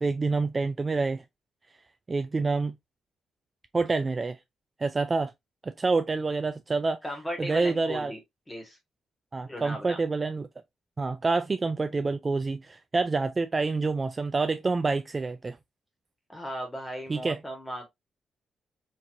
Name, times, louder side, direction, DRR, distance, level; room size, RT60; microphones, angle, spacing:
voice 1, 0.0-1.2 2.1-2.8 3.7-4.4 4.8-5.3 5.6-7.0 7.4-8.1 9.3-10.5 11.0-15.6 17.1-17.4, right 3 dB, 25° right, 0.3 m, -27 dB
voice 2, 7.0-8.2 8.5-8.8 9.4-10.0 16.3-17.9, equal, 10° left, 1.4 m, -36 dB
4.5 x 2.7 x 2.5 m
cardioid pair, 135°, 0 cm